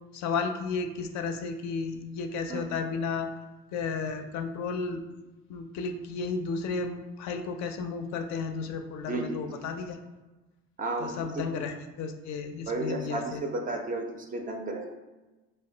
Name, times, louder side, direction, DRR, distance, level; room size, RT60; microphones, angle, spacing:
voice 1, 0.1-3.3 3.7-5.0 5.5-10.0 11.0-13.4, left 4 dB, 60° left, 6 dB, 0.4 m, -33 dB
voice 2, 10.8-11.5 12.7-14.0 14.3-14.9, right 2 dB, 25° right, 3 dB, 0.3 m, -32 dB
2.5 x 2.2 x 3.7 m, 1.1 s
cardioid pair, 105°, 32 cm